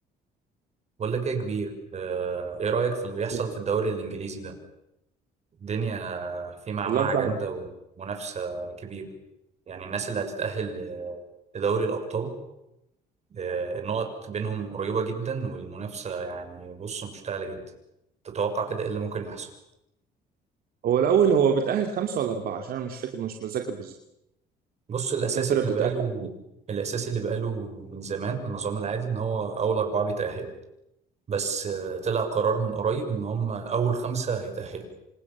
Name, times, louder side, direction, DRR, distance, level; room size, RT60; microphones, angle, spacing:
voice 1, 1.0-4.6 5.6-7.6 8.0-9.1 9.7-11.2 11.5-12.4 13.3-17.6 18.2-19.5 24.9-26.4 26.7-30.5 31.3-34.9, right 5 dB, 40° right, 5 dB, 6.8 m, -29 dB
voice 2, 6.8-7.3 20.8-23.9 25.4-25.9, right 7 dB, 60° right, 4 dB, 2.8 m, -25 dB
28.5 x 27.5 x 7.4 m, 0.86 s
cardioid pair, 110°, 17 cm